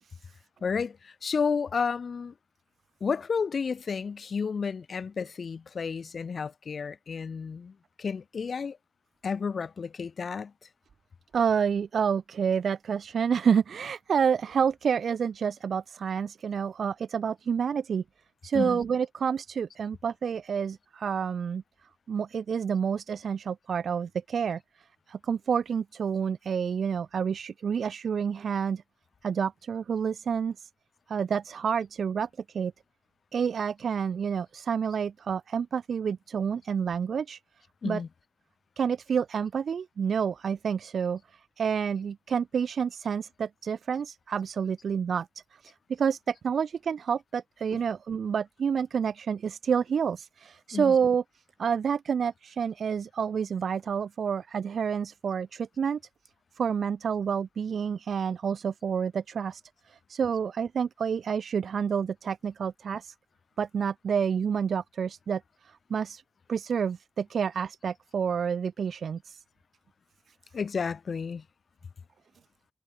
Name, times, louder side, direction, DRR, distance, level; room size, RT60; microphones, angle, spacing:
voice 1, 0.6-2.3 3.0-8.8 9.2-10.5 18.5-18.8 37.8-38.1 47.7-47.8 50.7-51.0 70.5-71.5, left 5 dB, 70° left, 2.3 m, -31 dB
voice 2, 11.3-18.0 18.4-21.6 22.1-24.6 25.1-28.8 29.2-30.7 31.1-32.3 32.5-32.7 33.3-37.4 37.8-38.0 38.8-45.3 45.5-51.2 51.6-56.0 56.6-59.6 59.9-63.1 63.6-66.2 66.5-69.4, right 7 dB, 80° right, 0.4 m, -29 dB
cardioid pair, 40°, 0 cm